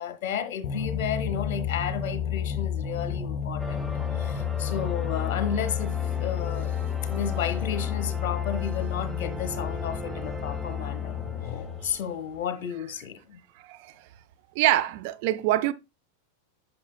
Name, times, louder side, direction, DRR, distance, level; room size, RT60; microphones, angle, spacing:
voice 1, 0.0-3.9 4.1-11.2 11.8-13.4, left 8 dB, 50° left, 1.1 m, -33 dB
sound 1, 0.6-11.9, left 8 dB, 35° left, 1.3 m, -31 dB
sound 2, 3.6-12.8, equal, ahead, 0.6 m, -40 dB
voice 2, 13.6-13.9 14.6-15.7, right 15 dB, 45° right, 0.4 m, -24 dB
9.6 x 5.9 x 2.2 m
figure-of-eight pair, 90°, 0 cm